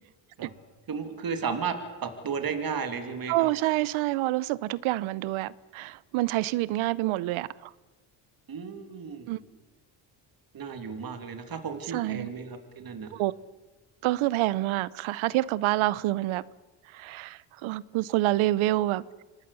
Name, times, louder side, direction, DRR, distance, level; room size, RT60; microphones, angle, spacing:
voice 1, 0.9-1.7 2.0-3.5 8.5-9.3 10.5-13.1, right 6 dB, 50° right, 2.9 m, -34 dB
voice 2, 3.3-7.5 9.3-9.4 11.9-12.3 13.1-13.3 14.0-16.4 16.9-19.0, right 17 dB, 85° right, 0.8 m, -27 dB
26.0 x 19.5 x 7.0 m
cardioid pair, 90°, 47 cm